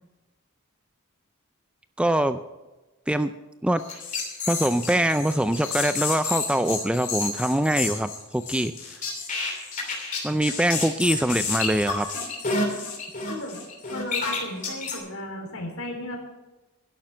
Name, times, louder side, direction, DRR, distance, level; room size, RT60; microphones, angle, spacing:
voice 1, 2.0-2.4 3.1-3.3 3.6-3.8 4.5-8.7 10.2-12.1, right 1 dB, 5° right, 11 dB, 0.4 m, -23 dB
sound 1, 3.8-15.0, left 4 dB, 35° left, 3.0 m, -30 dB
voice 2, 13.3-13.6 13.9-16.2, left 1 dB, 70° left, 2 dB, 3.6 m, -35 dB
12.0 x 11.0 x 5.7 m, 1.1 s
head